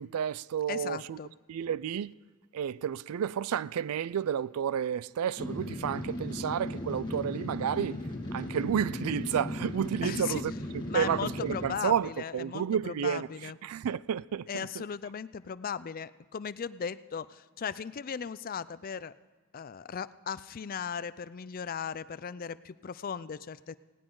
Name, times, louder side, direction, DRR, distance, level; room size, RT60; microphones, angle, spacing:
voice 1, 0.0-1.2 1.5-2.1 2.5-8.0 8.3-10.5 10.9-14.8, right 8 dB, 75° right, 0.4 m, -31 dB
voice 2, 0.7-1.3 10.0-10.4 10.9-13.6 14.5-19.1 19.5-23.7, left 7 dB, 40° left, 0.4 m, -37 dB
sound 1, 5.4-11.7, left 1 dB, 20° left, 2.1 m, -37 dB
18.5 x 18.0 x 3.8 m
head